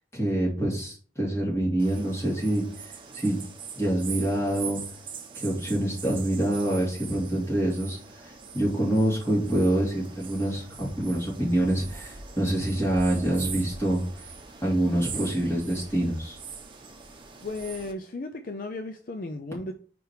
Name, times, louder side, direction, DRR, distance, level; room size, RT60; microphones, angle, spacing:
voice 1, 0.1-3.4 3.8-4.8 5.3-14.3 14.6-16.4, right 1 dB, 15° left, -5 dB, 2.7 m, -26 dB
sound 1, 1.8-17.9, right 5 dB, 30° right, 0.9 m, -42 dB
voice 2, 17.4-19.7, left 2 dB, 50° left, 6 dB, 0.5 m, -35 dB
5.1 x 4.8 x 4.8 m, 0.43 s
head